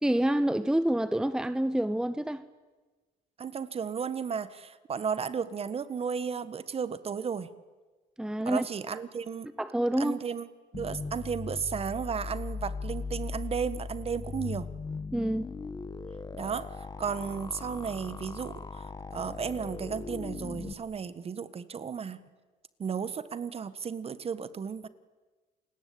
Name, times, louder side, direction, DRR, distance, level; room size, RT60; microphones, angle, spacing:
voice 1, 0.0-2.4 8.2-8.7 9.6-10.2 15.1-15.5, right 1 dB, 5° right, 0.8 m, -27 dB
voice 2, 3.4-7.5 8.4-9.5 10.0-10.5 10.7-14.7 16.4-22.2 22.8-24.9, right 6 dB, 35° right, 1.5 m, -34 dB
sound 1, 10.7-20.7, left 4 dB, 25° left, 1.6 m, -39 dB
29.0 x 20.5 x 8.7 m
cardioid pair, 110°, 17 cm